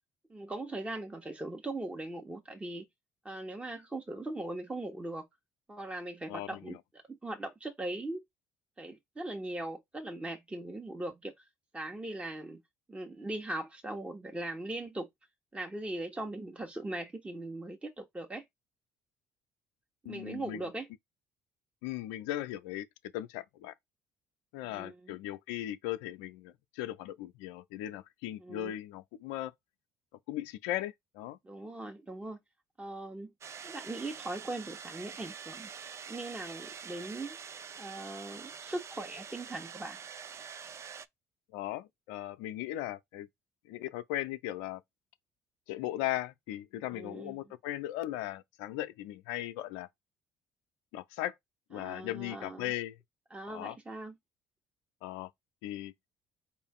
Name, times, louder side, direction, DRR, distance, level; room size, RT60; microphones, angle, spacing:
voice 1, 0.3-2.9 3.2-5.3 5.7-6.8 7.1-8.2 8.8-11.5 11.7-12.6 12.9-15.1 15.5-18.4 20.0-20.9 24.6-25.2 28.4-28.7 31.4-32.4 32.8-33.3 33.6-35.7 36.1-37.4 37.8-40.0 46.9-47.4 51.7-52.7 53.3-54.2, right 2 dB, 15° right, 1.2 m, -40 dB
voice 2, 6.3-6.8 20.0-20.6 21.8-22.9 23.1-23.7 24.5-29.5 30.3-31.4 41.5-43.3 43.7-44.8 45.7-49.9 50.9-51.3 51.7-53.0 53.5-53.8 55.0-55.3 55.6-55.9, left 14 dB, 80° left, 0.6 m, -38 dB
Hair Dryer, 33.4-41.1, right 7 dB, 40° right, 0.5 m, -46 dB
4.6 x 2.6 x 3.6 m
hypercardioid pair, 65°, 7 cm